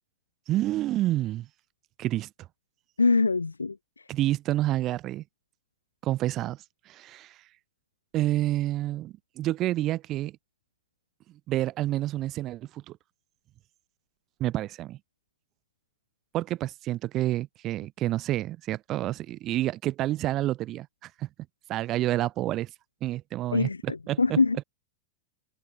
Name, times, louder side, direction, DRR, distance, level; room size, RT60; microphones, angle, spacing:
voice 1, 0.5-1.5 2.0-2.3 4.1-5.2 6.0-6.6 6.9-7.4 8.1-10.4 11.5-13.0 14.4-15.0 16.3-21.3 21.7-22.7 23.0-24.4, right 15 dB, 35° right, 0.8 m, -29 dB
voice 2, 3.0-4.0 23.5-24.6, left 4 dB, 80° left, 0.7 m, -24 dB
figure-of-eight pair, 90°, 0 cm